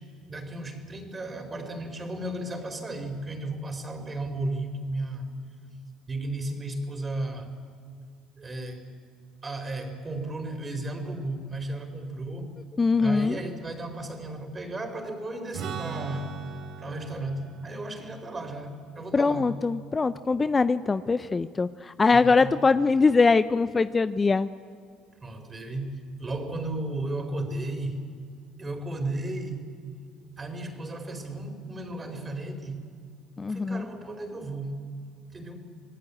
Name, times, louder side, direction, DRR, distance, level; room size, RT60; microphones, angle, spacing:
voice 1, 0.3-5.3 6.1-7.5 8.4-8.9 9.4-12.5 13.0-16.3 16.8-19.6 22.1-22.5 25.2-28.1 28.6-29.7 30.4-32.8 33.5-34.9 35.3-35.6, right 2 dB, 25° right, 6 dB, 4.9 m, -34 dB
voice 2, 12.8-13.4 19.1-24.5 33.4-33.9, left 4 dB, 25° left, 13 dB, 0.7 m, -22 dB
Strum, 15.5-21.2, right 4 dB, 70° right, 4.4 m, -41 dB
27.0 x 19.0 x 8.7 m, 2.2 s
hypercardioid pair, 65°, 0 cm